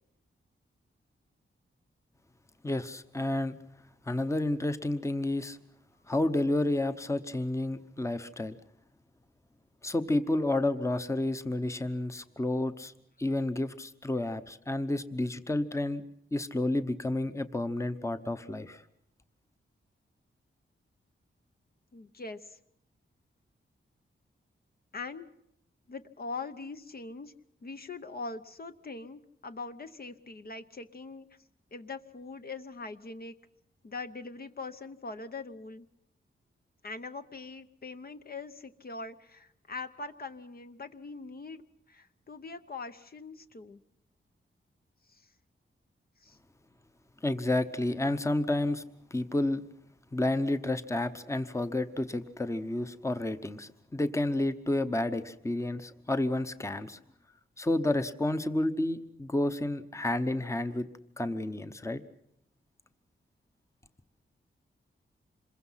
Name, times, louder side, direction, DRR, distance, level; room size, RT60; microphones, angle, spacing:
voice 1, 2.6-3.6 4.1-5.6 6.1-8.6 9.8-12.9 13.2-16.0 16.3-18.8 47.2-48.8 49.1-49.6 50.1-57.0 57.6-60.9 61.2-62.0, left 1 dB, 15° left, 10 dB, 0.9 m, -30 dB
voice 2, 21.9-22.6 24.9-25.3 25.9-27.3 27.6-31.3 31.7-33.3 33.8-35.9 36.8-41.6 41.9-43.8 45.1-45.3 46.2-46.4, left 3 dB, 45° left, 9 dB, 0.9 m, -42 dB
27.0 x 22.0 x 5.7 m, 0.75 s
wide cardioid pair, 125°, 21 cm